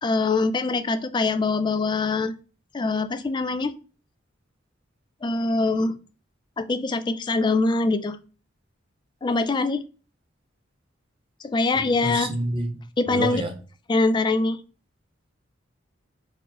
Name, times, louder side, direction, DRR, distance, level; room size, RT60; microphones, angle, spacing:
voice 1, 0.0-2.3 2.7-3.7 5.2-6.0 6.6-8.2 9.2-9.8 11.4-12.3 13.0-13.4 13.9-14.6, left 3 dB, 25° left, 10 dB, 0.3 m, -23 dB
voice 2, 11.7-12.7 13.1-13.5, right 1 dB, 25° right, 4 dB, 0.8 m, -28 dB
4.4 x 2.1 x 4.0 m, 0.36 s
head